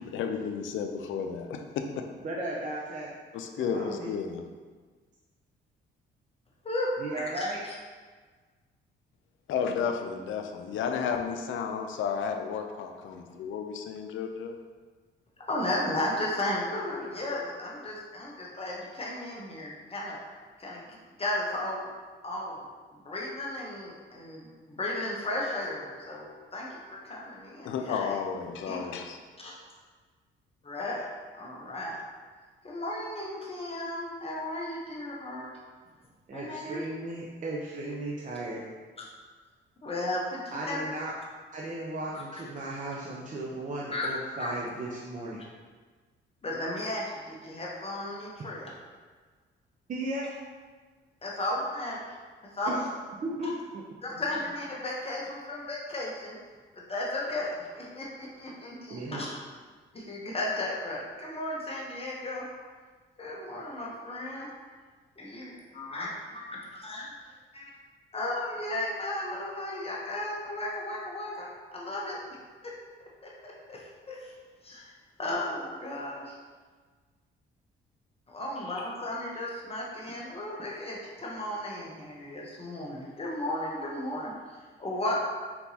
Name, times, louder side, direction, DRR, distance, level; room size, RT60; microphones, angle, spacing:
voice 1, 0.0-2.1 3.3-4.4 9.5-14.6 27.6-29.2, left 6 dB, 80° left, 5 dB, 0.5 m, -32 dB
voice 2, 2.2-3.1 3.6-4.1 7.0-7.6 36.3-38.6 40.5-41.1 41.5-45.4 49.9-50.3 52.7-52.8 53.2-53.8 58.9-59.2, right 2 dB, 40° right, -4 dB, 0.6 m, -35 dB
voice 3, 6.6-7.7 15.4-20.2 20.6-20.9 21.2-21.8 22.2-22.6 22.9-28.2 28.6-28.9 29.4-29.5 30.6-31.1 31.3-32.0 32.6-35.5 36.3-36.8 39.0-39.1 39.8-40.8 42.1-42.2 43.9-44.1 44.4-44.5 46.4-48.7 51.2-52.1 52.5-52.8 53.4-53.5 54.0-56.4 56.7-59.3 59.9-62.4 63.2-64.5 65.2-66.1 66.7-67.1 67.5-67.7 68.1-72.2 72.6-72.7 73.2-74.4 74.6-74.9 75.2-76.4 78.3-85.2, left 1 dB, 30° left, -3 dB, 0.9 m, -35 dB
4.4 x 4.0 x 2.8 m, 1.5 s
cardioid pair, 90°, 20 cm